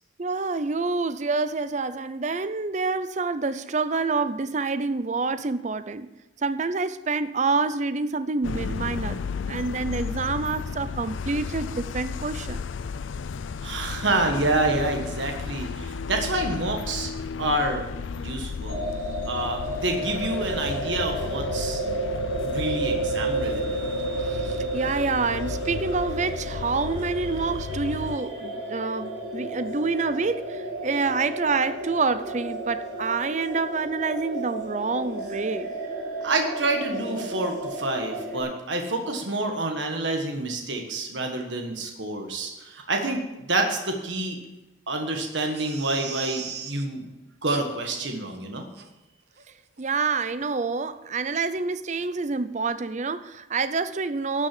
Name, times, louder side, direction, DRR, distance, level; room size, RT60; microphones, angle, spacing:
voice 1, 0.2-6.1 6.4-9.2 9.5-12.6 24.2-35.7 49.8-54.5, right 4 dB, 40° right, 13 dB, 0.5 m, -27 dB
sound 1, 8.4-28.2, left 5 dB, 85° left, 0.4 m, -34 dB
voice 2, 13.6-17.1 17.4-17.8 18.1-18.9 19.2-21.8 22.4-23.8 36.2-44.4 44.9-47.1 47.4-48.6, right 2 dB, 75° right, 3 dB, 1.5 m, -28 dB
sound 2, 18.7-38.4, right 2 dB, 90° right, 4.7 m, -32 dB
Crying sobbing, 45.3-46.8 47.5-47.9 48.3-48.4 48.7-48.9 49.4-49.5 49.8-49.9, right 8 dB, 60° right, 1.0 m, -38 dB
12.0 x 6.1 x 8.4 m, 1.0 s
head